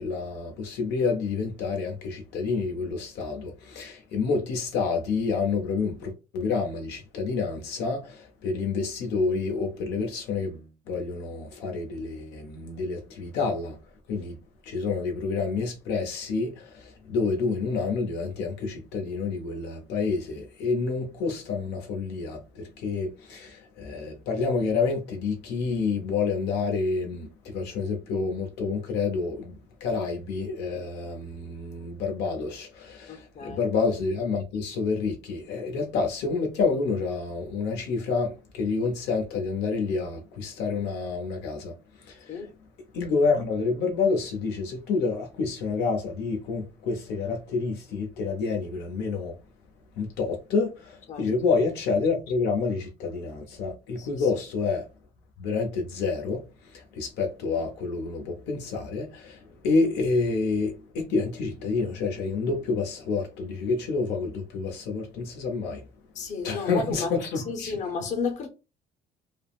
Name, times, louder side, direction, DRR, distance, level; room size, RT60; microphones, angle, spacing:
voice 1, 0.0-13.8 14.1-14.4 14.7-29.5 29.8-41.7 42.0-42.4 42.9-49.3 50.0-54.9 55.4-65.9 66.4-67.8, left 4 dB, 85° left, 0.7 m, -28 dB
voice 2, 33.1-33.6 42.3-42.5 51.1-51.3 54.0-54.3 66.1-68.5, left 4 dB, 45° left, 0.7 m, -33 dB
3.3 x 2.0 x 2.4 m
cardioid pair, 110°, 17 cm